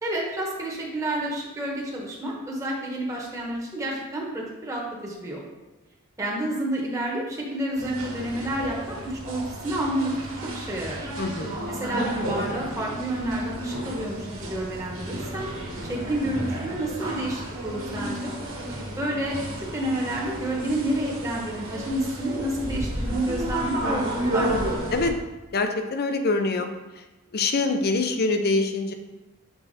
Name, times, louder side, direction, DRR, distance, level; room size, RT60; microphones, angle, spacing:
voice 1, 0.0-5.4 6.2-10.2 10.4-11.1 11.7-15.5 15.8-18.3 19.0-19.4 19.7-24.8, right 1 dB, 15° right, -4 dB, 1.3 m, -29 dB
sound 1, 7.8-25.1, right 1 dB, 65° right, 1.7 m, -32 dB
voice 2, 11.2-11.5 24.9-25.1 25.5-26.7 27.3-28.9, left 3 dB, 45° left, 6 dB, 0.6 m, -24 dB
7.1 x 4.0 x 4.2 m, 1.1 s
head